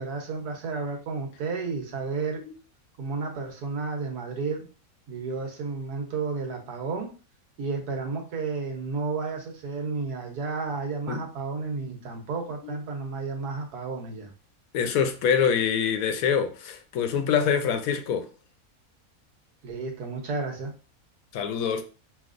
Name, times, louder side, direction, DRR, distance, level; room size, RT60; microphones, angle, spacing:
voice 1, 0.0-2.4 3.0-4.6 5.1-7.1 7.6-14.3 19.6-20.7, right 4 dB, 90° right, 1.5 m, -32 dB
voice 2, 14.7-18.3 21.3-21.8, left 7 dB, 70° left, 1.0 m, -25 dB
5.2 x 2.9 x 2.5 m
omnidirectional pair, 1.6 m